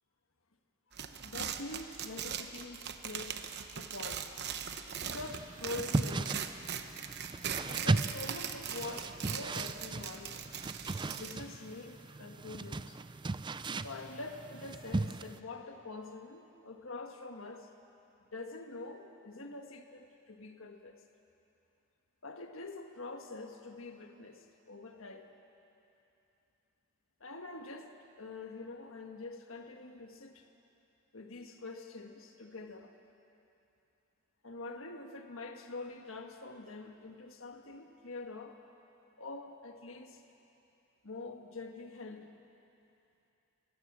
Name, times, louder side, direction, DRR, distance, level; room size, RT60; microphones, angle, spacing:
Ripping Paper, 0.9-11.4, right 8 dB, 55° right, 0.9 m, -40 dB
voice 1, 1.2-3.4 3.7-4.4 5.0-6.6 7.6-10.4 11.1-13.0 13.8-17.7 18.3-21.0 22.2-25.3 27.2-27.9 28.2-30.4 31.1-32.9 34.4-38.6 39.2-40.2 41.0-42.3, left 3 dB, 75° left, 5 dB, 1.5 m, -45 dB
sound 1, 5.1-15.4, right 2 dB, 25° right, 0.4 m, -37 dB
21.5 x 16.5 x 7.5 m, 2.9 s
head